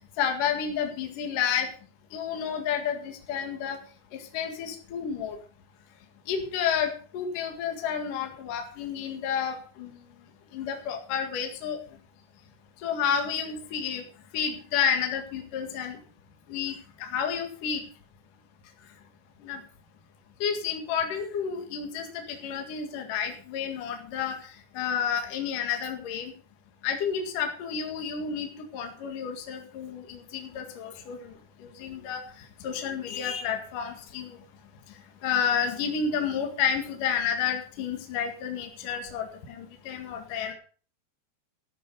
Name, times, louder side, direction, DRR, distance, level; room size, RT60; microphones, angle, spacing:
voice 1, 0.2-1.7 2.1-3.8 4.1-5.4 6.3-10.0 10.5-11.8 12.8-14.0 14.3-16.0 16.5-17.8 19.4-19.6 20.4-26.3 26.8-34.4 34.9-35.0 35.2-40.5, left 7 dB, 55° left, 4 dB, 3.2 m, -30 dB
13.0 x 11.0 x 5.4 m, 0.41 s
omnidirectional pair, 4.9 m